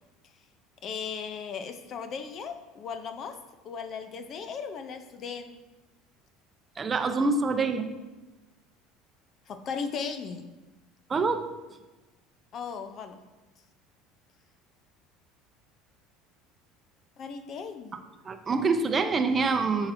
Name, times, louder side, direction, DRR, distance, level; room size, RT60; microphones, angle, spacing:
voice 1, 0.8-3.4 3.6-5.6 9.5-10.4 12.5-13.2 17.2-18.0, left 6 dB, 45° left, 8 dB, 0.6 m, -37 dB
voice 2, 6.8-7.9 11.1-11.5 18.2-19.9, right 4 dB, 30° right, 7 dB, 0.7 m, -25 dB
8.4 x 5.8 x 2.7 m, 1.1 s
supercardioid pair, 105°, 0 cm